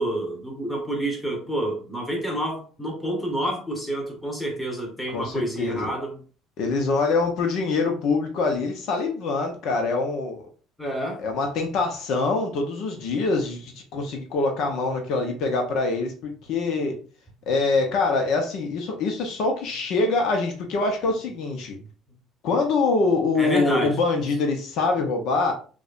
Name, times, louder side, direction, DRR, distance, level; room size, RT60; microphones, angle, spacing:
voice 1, 0.0-6.1 10.8-11.2 23.3-24.0, right 1 dB, 5° left, 0 dB, 1.2 m, -28 dB
voice 2, 5.1-5.9 6.6-10.5 11.2-16.9 17.5-21.7 22.4-25.5, left 3 dB, 65° left, 3 dB, 0.7 m, -24 dB
4.8 x 2.3 x 2.5 m, 0.38 s
supercardioid pair, 105°, 0 cm